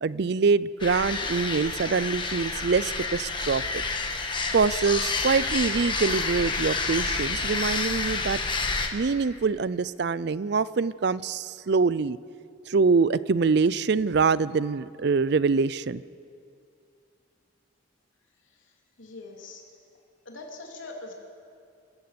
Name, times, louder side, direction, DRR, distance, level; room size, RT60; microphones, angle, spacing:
voice 1, 0.0-3.8 4.5-8.4 8.9-12.2 12.7-16.0, right 4 dB, 55° right, 18 dB, 0.5 m, -24 dB
sound 1, 0.8-8.9, left 3 dB, 25° left, 1.5 m, -29 dB
voice 2, 19.0-19.6 20.3-21.1, left 2 dB, 85° left, 0 dB, 3.5 m, -41 dB
26.5 x 15.0 x 7.0 m, 2.4 s
head